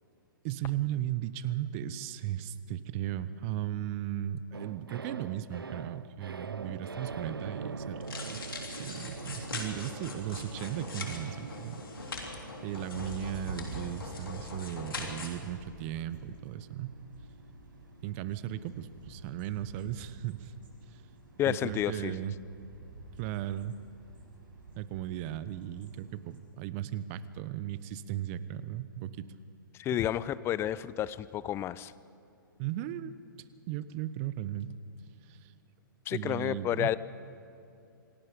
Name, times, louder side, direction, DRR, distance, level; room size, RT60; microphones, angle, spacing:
voice 1, 0.4-8.4 8.7-11.8 12.6-17.0 18.0-20.5 20.9-21.0 21.5-22.3 23.2-23.7 24.8-29.3 29.9-30.0 32.6-33.1 33.7-34.7 35.3-35.5 36.1-36.9, right 12 dB, 40° right, 15 dB, 0.9 m, -36 dB
sound 1, 4.5-20.9 21.1-21.3, right 4 dB, 90° right, 0.7 m, -45 dB
sound 2, 6.8-26.4, right 3 dB, 70° right, 6.9 m, -51 dB
sound 3, 8.0-15.3, left 3 dB, 80° left, 3.4 m, -41 dB
voice 2, 21.4-22.1 29.8-31.9 36.1-37.0, left 12 dB, 20° left, 17 dB, 0.5 m, -30 dB
27.0 x 18.5 x 5.2 m, 2.7 s
hypercardioid pair, 120°, 12 cm